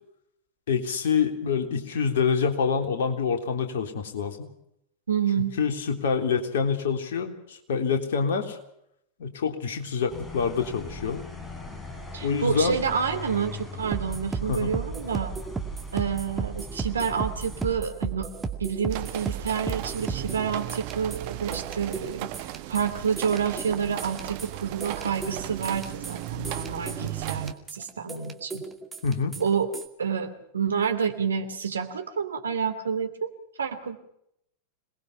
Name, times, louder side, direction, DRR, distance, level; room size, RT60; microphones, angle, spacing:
voice 1, 0.7-4.5 5.6-8.6 9.2-11.2 12.2-12.8 14.5-14.7 29.0-29.3, left 6 dB, 60° left, 5 dB, 3.5 m, -26 dB
voice 2, 5.1-5.5 12.1-15.3 15.9-18.3 18.6-22.3 22.7-28.6 29.4-29.7 30.0-33.3 33.6-34.0, right 7 dB, 70° right, 8 dB, 2.6 m, -28 dB
sound 1, 10.1-17.8, left 2 dB, 10° left, 3.9 m, -40 dB
sound 2, 13.8-29.9, right 4 dB, 15° right, 2.4 m, -35 dB
sound 3, 18.9-27.5, right 14 dB, 45° right, 1.3 m, -36 dB
26.5 x 20.0 x 5.8 m, 0.76 s
figure-of-eight pair, 90°, 0 cm